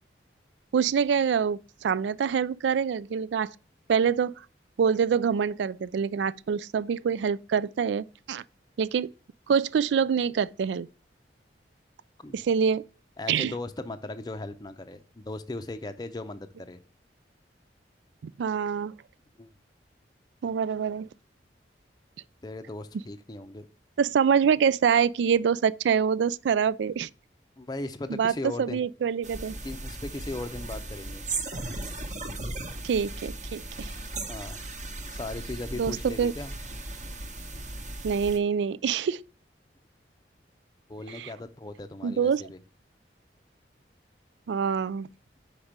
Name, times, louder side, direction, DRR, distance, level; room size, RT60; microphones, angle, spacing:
voice 1, 0.7-3.5 3.9-4.3 4.8-8.4 8.8-9.1 9.5-10.9 12.3-12.8 13.3-13.5 18.2-19.0 20.4-21.1 24.0-27.1 28.1-28.3 28.6-29.5 32.8-33.9 35.8-36.3 38.0-39.2 41.1-41.3 42.0-42.4 44.5-45.1, right 7 dB, 85° right, 0.3 m, -25 dB
voice 2, 13.2-16.8 19.4-19.5 22.4-23.7 27.6-28.8 29.6-31.3 34.3-34.6 35.1-36.6 40.9-42.6, left 2 dB, 25° left, 0.5 m, -37 dB
sound 1, 29.2-38.4, right 2 dB, 45° right, 1.0 m, -37 dB
5.3 x 5.1 x 5.8 m
head